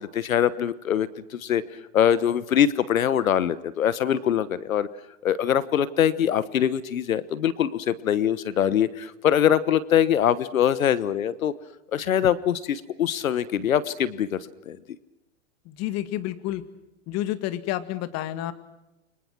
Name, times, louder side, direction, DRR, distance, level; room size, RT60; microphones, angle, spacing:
voice 1, 0.0-1.6 1.9-4.9 5.2-11.5 11.9-14.4 14.7-14.8, left 9 dB, 80° left, 17 dB, 1.3 m, -23 dB
voice 2, 15.7-16.6 17.1-18.5, left 13 dB, 40° left, 11 dB, 2.1 m, -29 dB
29.5 x 24.5 x 6.1 m, 0.92 s
hypercardioid pair, 110°, 40 cm